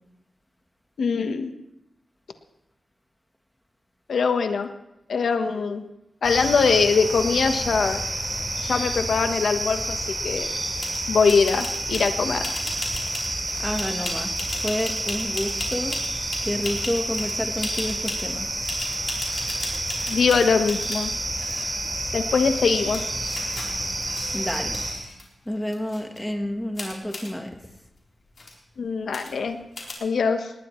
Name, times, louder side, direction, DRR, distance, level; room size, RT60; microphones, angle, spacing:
voice 1, 1.0-1.5 4.1-4.7 5.1-5.8 6.2-8.0 8.6-10.5 11.1-12.4 20.1-21.1 22.1-23.0 28.8-29.6 30.0-30.5, left 5 dB, 85° left, 7 dB, 1.2 m, -22 dB
sound 1, 6.2-24.9, right 2 dB, 30° right, 4.5 m, -29 dB
sound 2, 10.8-11.0 11.3-12.1 12.4-17.3 17.6-18.3 18.6-21.1 21.3-22.0 22.6-22.7 22.9-25.2 25.6-26.2 26.8-27.3 28.0-28.1 28.3-28.6 29.1-29.5 29.8-29.9, left 2 dB, 45° left, 3.8 m, -36 dB
voice 2, 13.6-14.3 14.6-16.0 16.4-18.5 24.3-24.8 25.5-27.6, equal, 5° left, 4 dB, 1.4 m, -29 dB
19.5 x 19.0 x 3.2 m, 0.89 s
wide cardioid pair, 155°, 0 cm